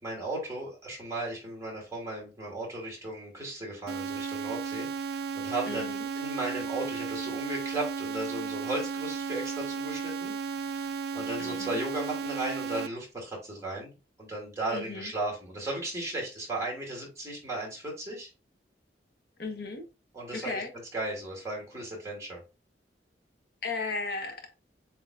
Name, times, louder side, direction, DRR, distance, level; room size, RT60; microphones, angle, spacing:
voice 1, 0.0-10.3 10.6-13.9 14.2-18.3 20.1-20.6 20.9-22.4, right 2 dB, 15° right, 2.2 m, -36 dB
sound 1, 3.9-12.9, right 5 dB, 60° right, 0.4 m, -34 dB
voice 2, 5.7-6.1 11.4-11.8 14.7-15.1 19.4-19.8 20.3-20.7 23.6-24.4, left 3 dB, 60° left, 1.0 m, -35 dB
7.5 x 2.9 x 2.3 m
head